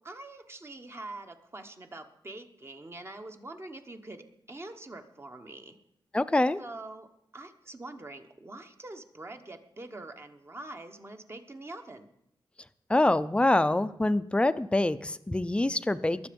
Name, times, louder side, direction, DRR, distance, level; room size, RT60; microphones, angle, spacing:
voice 1, 0.0-5.8 6.6-7.1 7.3-12.1, right 2 dB, 30° right, 6 dB, 1.2 m, -44 dB
voice 2, 6.1-6.6 12.9-16.3, left 2 dB, 10° left, 13 dB, 0.5 m, -25 dB
21.5 x 7.8 x 5.3 m, 0.77 s
wide cardioid pair, 140°, 9 cm